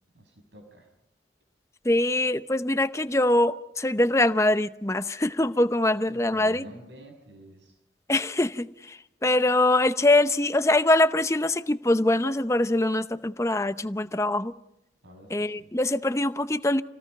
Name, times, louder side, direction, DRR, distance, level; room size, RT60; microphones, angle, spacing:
voice 1, 0.1-0.9 6.1-7.8 15.0-15.7, equal, 85° right, 6.2 m, -48 dB
voice 2, 1.8-6.6 8.1-14.5 15.3-16.8, left 1 dB, 15° left, 0.7 m, -23 dB
28.0 x 18.0 x 5.4 m
head